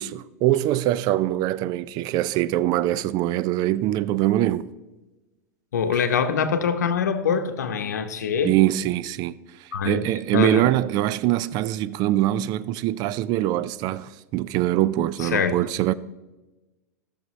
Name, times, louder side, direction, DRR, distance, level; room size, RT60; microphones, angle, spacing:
voice 1, 0.0-4.7 8.4-9.3 9.6-15.9, right 14 dB, 50° right, 0.4 m, -23 dB
voice 2, 5.7-8.5 9.7-10.0 10.3-10.7 15.2-15.6, left 6 dB, 85° left, 0.8 m, -24 dB
15.0 x 6.6 x 3.2 m
hypercardioid pair, 100°, 9 cm